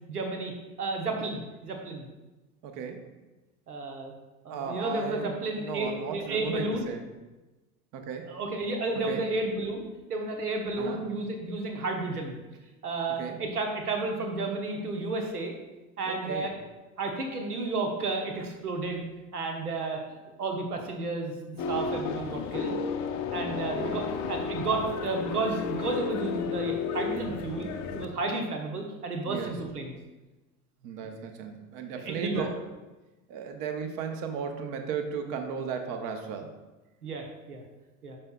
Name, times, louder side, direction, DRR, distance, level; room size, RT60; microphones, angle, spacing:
voice 1, 0.1-0.5 0.8-2.1 3.7-4.1 4.4-6.9 8.2-9.8 10.1-12.4 12.8-15.5 16.0-16.5 17.0-19.0 19.3-20.0 20.4-22.8 23.3-27.7 27.9-29.9 31.0-31.1 31.9-32.5 37.0-37.6 38.0-38.2, right 3 dB, 85° right, 2 dB, 1.1 m, -32 dB
voice 2, 2.6-3.0 4.5-7.0 7.9-8.3 9.1-9.2 10.8-11.0 13.2-13.4 16.1-16.5 23.4-24.3 29.3-29.5 30.8-32.5 33.3-36.5, right 6 dB, 50° right, 5 dB, 1.0 m, -35 dB
sound 1, 21.6-28.0, left 6 dB, 40° left, 0.7 m, -32 dB
8.6 x 5.7 x 2.3 m, 1.1 s
figure-of-eight pair, 75°, 45 cm